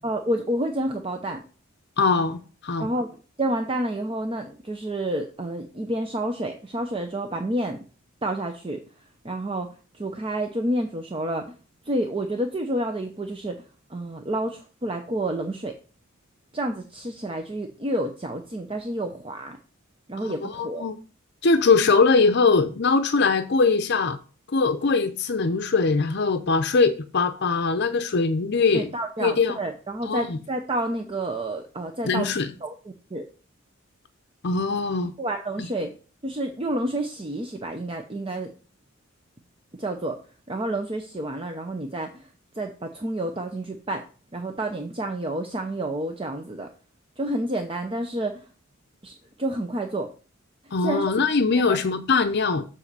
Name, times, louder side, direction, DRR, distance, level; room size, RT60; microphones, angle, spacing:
voice 1, 0.0-1.4 2.8-3.1 3.4-7.8 8.2-8.8 9.2-9.7 9.9-11.5 11.9-13.6 13.9-15.8 16.5-19.6 20.1-20.9 28.7-32.3 32.6-32.7 33.1-33.2 35.2-36.0 36.2-38.5 39.8-40.2 40.5-42.3 42.5-44.0 44.3-46.7 47.2-48.5 49.0-50.1 50.8-51.0 51.7-51.8, right 1 dB, 25° right, 0.7 m, -29 dB
voice 2, 2.0-2.4 2.6-2.9 20.2-21.0 21.4-24.2 24.5-28.9 29.2-29.6 30.0-30.4 32.0-32.5 34.4-35.1 35.6-35.7 50.7-52.7, left 4 dB, 55° left, 0.6 m, -22 dB
7.5 x 4.2 x 6.8 m
head